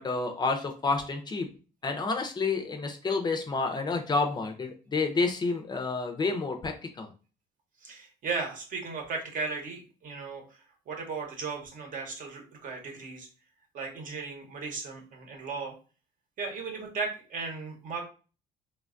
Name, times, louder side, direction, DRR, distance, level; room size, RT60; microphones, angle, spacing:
voice 1, 0.0-1.5 1.8-7.1, left 3 dB, 25° left, 4 dB, 0.4 m, -29 dB
voice 2, 7.8-13.3 13.7-15.7 16.4-18.0, right 4 dB, 50° right, 2 dB, 0.9 m, -36 dB
3.2 x 2.2 x 2.4 m, 0.36 s
cardioid pair, 110°, 17 cm